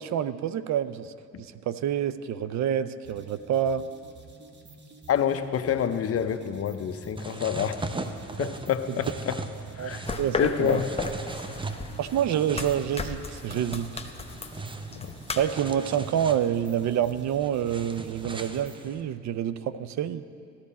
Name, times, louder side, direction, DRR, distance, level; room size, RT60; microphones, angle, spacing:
voice 1, 0.0-3.8 8.4-8.5 9.8-10.8 12.0-14.0 15.4-20.2, right 9 dB, 65° right, 14 dB, 0.5 m, -28 dB
sound 1, 3.0-18.9, right 4 dB, 35° right, 1.2 m, -51 dB
voice 2, 5.1-7.8 8.4-9.4 9.8-10.1 10.3-10.9 14.9-15.1, left 8 dB, 50° left, 9 dB, 0.7 m, -27 dB
sound 2, 7.2-19.0, right 3 dB, 15° right, 0.6 m, -39 dB
sound 3, 10.1-15.5, left 4 dB, 20° left, 0.8 m, -36 dB
14.0 x 12.0 x 4.2 m, 2.5 s
cardioid pair, 90°, 30 cm